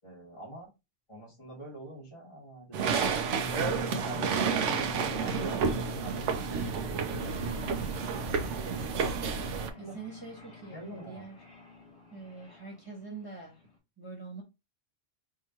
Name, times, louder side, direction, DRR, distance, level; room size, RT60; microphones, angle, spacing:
voice 1, 0.0-0.7 1.1-3.3 3.8-5.6 6.0-7.6 8.0-8.4 9.8-10.0 10.7-11.2, right 1 dB, 25° left, 1.8 m, -46 dB
sound 1, 2.7-9.7, right 5 dB, 75° right, 1.0 m, -30 dB
sound 2, 3.4-13.0, left 1 dB, 60° left, 2.3 m, -45 dB
voice 2, 9.8-11.4 12.1-13.6 14.0-14.4, right 4 dB, 20° right, 1.4 m, -44 dB
4.7 x 2.7 x 2.9 m
omnidirectional pair, 1.3 m